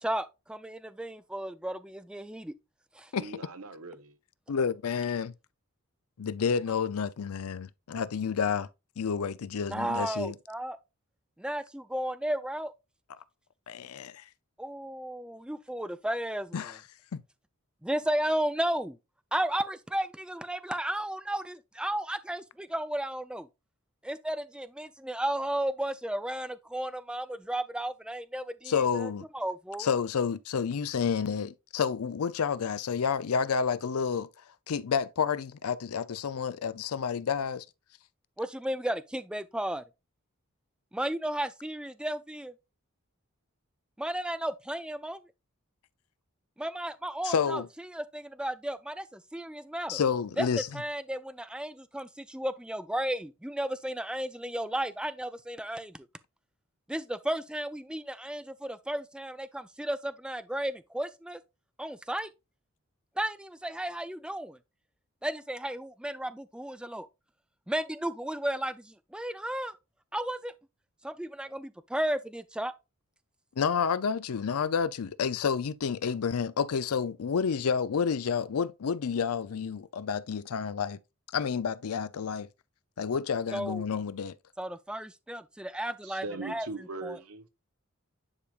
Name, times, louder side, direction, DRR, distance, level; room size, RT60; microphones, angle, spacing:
voice 1, 0.0-2.5 3.0-3.1 9.7-10.8 11.4-12.7 14.6-16.7 17.8-19.0 19.3-23.5 24.0-29.9 38.4-39.8 40.9-42.5 44.0-45.2 46.6-50.0 50.4-50.5 50.7-56.1 56.9-61.4 61.8-62.3 63.2-64.6 65.2-67.1 67.7-69.7 70.1-70.5 71.0-72.7 83.5-83.8 84.6-86.7 87.0-87.2, right 1 dB, 5° right, 0.3 m, -34 dB
voice 2, 3.1-4.2 86.0-87.5, right 3 dB, 90° right, 1.1 m, -40 dB
voice 3, 4.5-5.3 6.2-8.7 9.0-10.3 13.7-14.2 16.5-16.8 17.1-17.2 28.7-29.3 29.8-34.3 34.7-37.7 47.2-47.7 49.9-50.7 73.6-81.0 81.3-82.5 83.0-84.3, left 6 dB, 85° left, 0.5 m, -30 dB
9.8 x 4.9 x 2.4 m
head